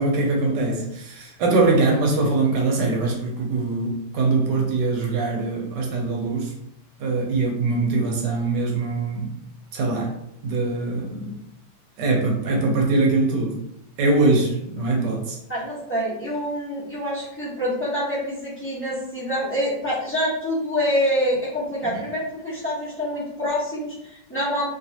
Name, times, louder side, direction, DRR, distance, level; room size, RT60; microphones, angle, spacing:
voice 1, 0.0-6.5 7.0-9.3 9.7-10.1 10.4-11.3 12.0-13.6 14.0-15.4, right 3 dB, 65° right, 0 dB, 1.2 m, -22 dB
voice 2, 15.5-24.6, equal, 15° left, -9 dB, 0.5 m, -26 dB
3.2 x 3.0 x 2.8 m, 0.79 s
omnidirectional pair, 2.2 m